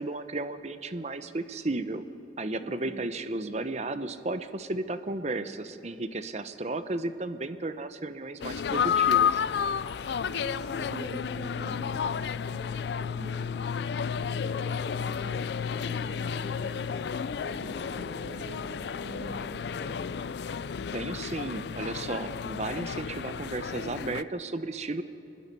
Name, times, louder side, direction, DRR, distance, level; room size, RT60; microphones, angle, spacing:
voice 1, 0.0-2.0 2.4-9.4 20.9-25.0, right 2 dB, 40° right, 11 dB, 0.8 m, -34 dB
voice 2, 2.5-3.0 10.2-13.3 13.6-16.7 17.3-18.7 19.0-19.9, equal, 90° left, -8 dB, 7.3 m, -44 dB
sound 1, 8.4-24.2, left 7 dB, 65° left, 0.4 m, -31 dB
sound 2, 11.8-22.3, equal, 10° right, 5.5 m, -54 dB
26.0 x 21.0 x 5.4 m, 2.7 s
head